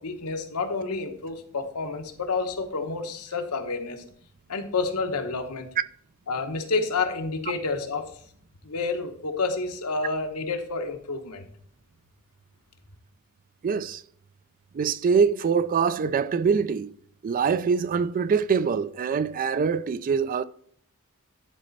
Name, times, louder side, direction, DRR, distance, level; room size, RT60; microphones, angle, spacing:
voice 1, 0.0-4.0 4.5-5.7 6.3-8.1 8.6-11.5, left 4 dB, 85° left, 1.1 m, -29 dB
voice 2, 13.6-14.0 14.7-16.9 17.2-20.4, right 6 dB, 40° right, 0.3 m, -24 dB
10.5 x 4.2 x 4.0 m
head